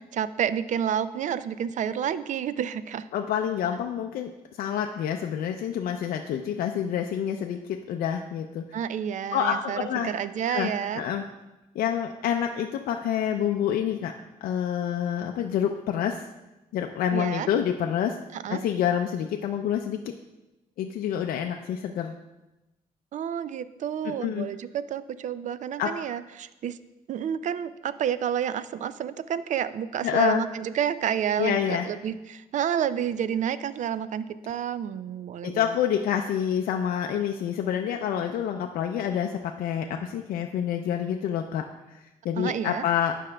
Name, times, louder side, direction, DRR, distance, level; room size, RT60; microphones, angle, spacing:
voice 1, 0.1-3.1 8.7-11.0 17.1-17.5 18.3-18.6 23.1-26.8 27.1-35.8 42.4-42.8, right 9 dB, 55° right, 14 dB, 0.4 m, -30 dB
voice 2, 3.1-4.3 4.6-8.7 9.3-10.1 10.5-11.2 11.8-14.1 14.4-16.2 16.7-18.2 18.5-20.0 20.8-22.1 24.0-24.5 25.8-25.9 30.0-30.4 31.4-31.9 35.4-43.2, left 9 dB, 75° left, 4 dB, 0.4 m, -27 dB
12.0 x 5.0 x 2.2 m, 1.0 s
cardioid pair, 75°, 15 cm